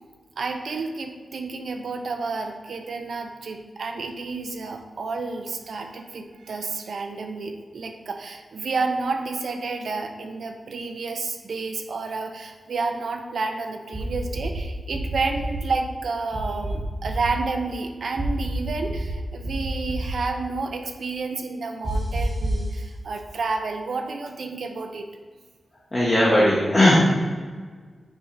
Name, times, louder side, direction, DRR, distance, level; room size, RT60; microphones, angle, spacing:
voice 1, 0.4-25.1, right 4 dB, 65° right, 4 dB, 0.6 m, -30 dB
sound 1, 13.9-14.6 14.9-15.6 16.3-17.3 18.2-19.1 19.4-20.1 21.8-22.6, right 1 dB, 40° right, 1.5 m, -28 dB
voice 2, 25.9-27.0, left 1 dB, 25° left, -6 dB, 1.1 m, -17 dB
8.6 x 5.1 x 2.6 m, 1.5 s
wide cardioid pair, 145°, 0 cm